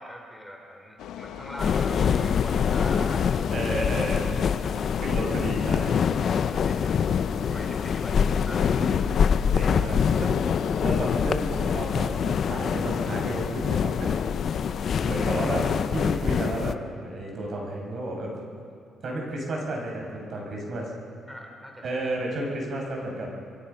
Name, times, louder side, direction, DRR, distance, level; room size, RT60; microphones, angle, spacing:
voice 1, 0.0-3.2 4.0-4.2 4.6-4.8 5.7-5.9 6.5-8.7 15.3-15.7 21.3-22.2, equal, ahead, 1 dB, 3.9 m, -42 dB
sound 1, 1.0-16.1, left 9 dB, 85° left, 1.1 m, -40 dB
sound 2, 1.6-16.7, left 7 dB, 55° left, 0.8 m, -25 dB
voice 2, 3.5-4.4 5.0-5.9 8.7-9.2 9.5-10.5 10.8-14.2 15.0-15.6 15.9-18.4 19.0-20.9 21.8-23.3, right 1 dB, 55° right, -1 dB, 7.1 m, -32 dB
26.5 x 24.0 x 5.8 m, 2.3 s
cardioid pair, 90°, 0 cm